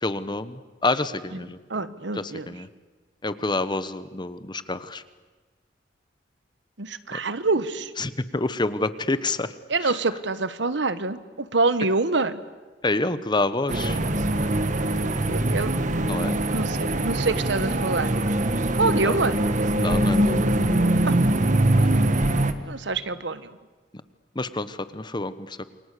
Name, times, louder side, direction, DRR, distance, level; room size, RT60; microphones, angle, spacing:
voice 1, 0.0-1.6 2.2-2.7 3.2-5.0 8.0-9.5 12.8-14.0 16.1-16.4 19.0-19.2 19.8-20.4 21.7-21.9 24.3-25.6, left 2 dB, 25° left, 13 dB, 1.1 m, -28 dB
voice 2, 1.3-2.6 6.8-7.9 9.7-12.4 15.3-15.7 16.5-18.1 18.8-19.4 21.1-21.2 22.7-23.5, right 3 dB, 70° right, 14 dB, 1.3 m, -26 dB
sound 1, 13.7-22.5, right 1 dB, 40° right, 1.5 m, -23 dB
28.5 x 24.0 x 8.3 m, 1.3 s
head